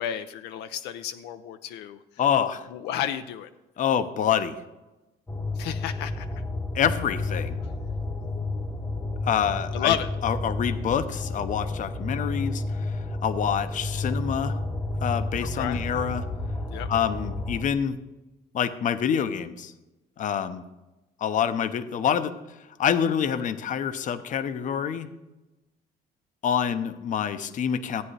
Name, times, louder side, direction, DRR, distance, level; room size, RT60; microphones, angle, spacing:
voice 1, 0.0-2.0 2.7-3.5 5.6-6.3 9.7-10.1 15.4-15.8 16.7-16.9, left 10 dB, 85° left, 9 dB, 0.5 m, -31 dB
voice 2, 2.2-2.7 3.8-4.6 6.7-7.6 9.2-10.0 10.2-13.0 13.2-14.6 15.0-16.2 16.9-18.0 18.5-19.7 20.2-20.6 21.2-22.3 22.8-25.1 26.4-28.0, left 8 dB, 50° left, 11 dB, 0.7 m, -26 dB
sound 1, 5.3-17.6, left 2 dB, 15° left, 0.9 m, -31 dB
14.0 x 8.7 x 3.3 m, 1.0 s
cardioid pair, 110°, 17 cm